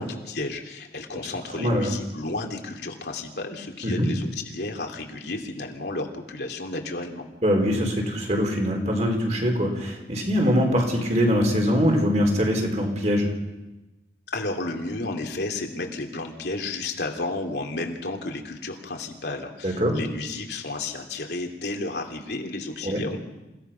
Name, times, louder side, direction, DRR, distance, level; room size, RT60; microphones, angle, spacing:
voice 1, 0.0-7.2 14.3-23.2, left 2 dB, 70° left, 2 dB, 2.8 m, -32 dB
voice 2, 1.6-1.9 3.8-4.1 7.4-13.3 19.6-20.0 22.8-23.0, equal, 40° right, 2 dB, 4.1 m, -23 dB
28.0 x 17.0 x 5.8 m, 1.0 s
head